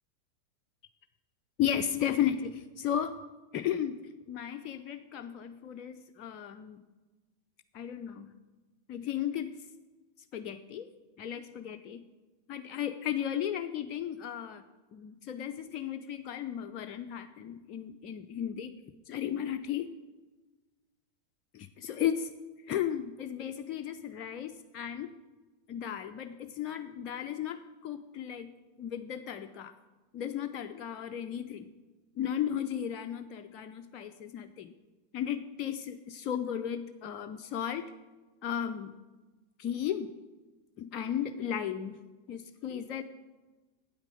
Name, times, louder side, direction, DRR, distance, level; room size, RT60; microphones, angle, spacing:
voice 1, 1.6-3.2 3.5-4.0 4.3-6.8 7.7-8.3 8.9-9.6 10.3-10.9 11.2-12.0 12.5-14.6 14.9-18.7 19.1-19.9 21.5-22.3 22.7-25.2 25.7-29.7 30.1-31.7 32.2-34.7 35.1-37.9 38.4-38.9 39.6-40.1 40.8-42.0 42.3-43.0, left 9 dB, 40° left, 7 dB, 0.4 m, -35 dB
8.9 x 8.3 x 5.1 m, 1.2 s
figure-of-eight pair, 90°, 0 cm